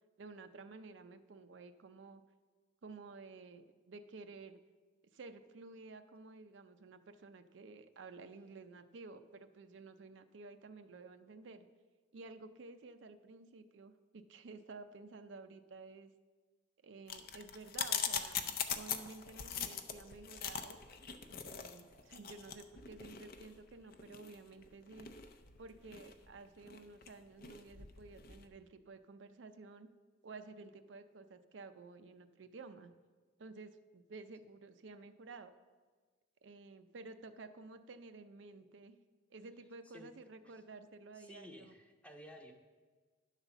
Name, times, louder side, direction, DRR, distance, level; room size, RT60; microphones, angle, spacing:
voice 1, 0.2-2.2 2.8-4.6 5.1-11.7 12.1-16.1 16.8-20.8 21.4-25.1 25.6-29.9 30.2-32.9 33.4-35.5 36.4-39.0 39.3-41.7, right 3 dB, 80° right, 9 dB, 0.5 m, -53 dB
sound 1, 17.1-28.5, left 8 dB, 55° left, 0.6 m, -42 dB
voice 2, 41.1-42.5, equal, 5° left, 3 dB, 0.8 m, -54 dB
10.5 x 4.1 x 7.0 m, 1.4 s
head